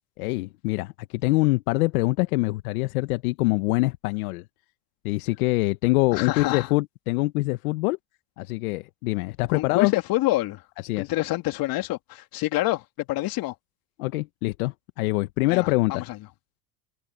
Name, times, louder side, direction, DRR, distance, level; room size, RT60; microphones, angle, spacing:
voice 1, 0.2-4.4 5.0-8.0 8.4-9.9 10.8-11.1 14.0-16.1, left 22 dB, 65° left, 1.4 m, -24 dB
voice 2, 6.1-6.7 9.5-10.6 11.0-13.5 15.5-16.2, left 18 dB, 45° left, 3.1 m, -27 dB
hypercardioid pair, 105°, 47 cm